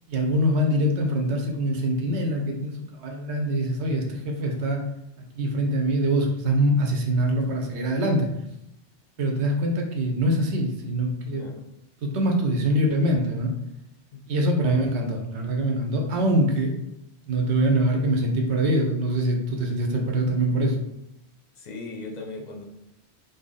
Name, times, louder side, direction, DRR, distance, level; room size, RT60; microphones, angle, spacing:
voice 1, 0.1-4.8 5.2-8.3 9.2-11.4 12.0-13.5 14.3-16.7 17.3-20.8, right 1 dB, 70° right, 2 dB, 1.0 m, -24 dB
voice 2, 11.3-11.6 14.1-14.2 21.6-22.7, left 3 dB, 45° left, 1 dB, 0.6 m, -38 dB
2.8 x 2.7 x 3.8 m, 0.82 s
omnidirectional pair, 1.2 m